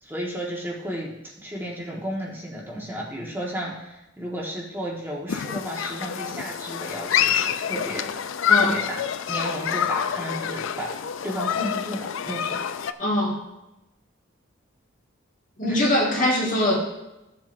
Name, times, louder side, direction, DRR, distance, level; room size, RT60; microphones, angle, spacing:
voice 1, 0.0-8.1 8.5-9.0 9.3-10.9 11.2-12.6 15.6-15.9, equal, 10° right, -4 dB, 1.4 m, -33 dB
Human group actions, 5.3-12.9, left 8 dB, 80° left, 0.4 m, -26 dB
voice 2, 8.5-8.8 13.0-13.4 15.6-16.8, left 1 dB, 40° left, -1 dB, 1.7 m, -22 dB
15.0 x 7.6 x 2.6 m, 0.94 s
head